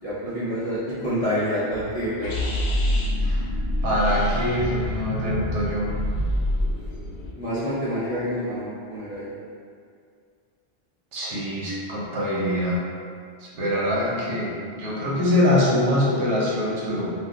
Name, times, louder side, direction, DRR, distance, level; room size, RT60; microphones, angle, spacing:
voice 1, 0.0-2.4 7.3-9.3, equal, 40° left, -11 dB, 0.5 m, -27 dB
sound 1, 2.2-7.3, equal, 80° left, 0.9 m, -26 dB
voice 2, 3.8-5.9 11.1-12.8 13.4-14.5 14.8-17.1, left 1 dB, 90° right, -5 dB, 1.0 m, -24 dB
2.3 x 2.2 x 3.6 m, 2.2 s
omnidirectional pair, 1.2 m